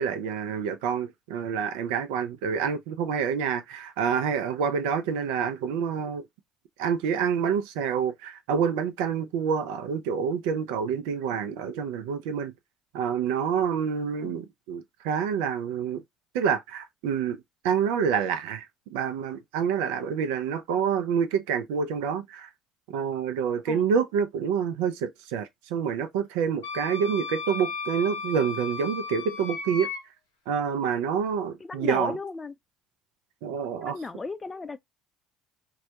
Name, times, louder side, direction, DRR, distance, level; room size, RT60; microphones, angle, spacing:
voice 1, 0.0-6.2 6.8-12.5 12.9-16.0 16.3-18.6 18.9-22.5 22.9-29.9 30.5-32.2 33.4-34.0, right 7 dB, 75° right, 0.5 m, -27 dB
Wind instrument woodwind instrument, 26.6-30.0, left 5 dB, 90° left, 0.8 m, -35 dB
voice 2, 31.6-32.5 33.8-34.8, left 3 dB, 25° left, 0.4 m, -35 dB
2.3 x 2.1 x 2.8 m
hypercardioid pair, 60°, 0 cm